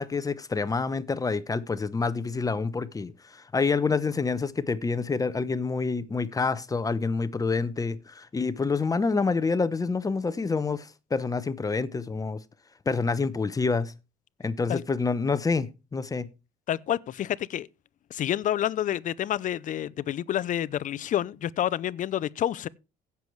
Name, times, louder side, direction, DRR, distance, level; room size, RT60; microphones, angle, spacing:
voice 1, 0.0-12.4 12.9-13.9 14.4-16.3, left 4 dB, 20° left, 0.8 m, -27 dB
voice 2, 16.7-17.7 18.1-22.7, left 11 dB, 50° left, 0.6 m, -28 dB
16.5 x 7.0 x 3.2 m
cardioid pair, 110°, 17 cm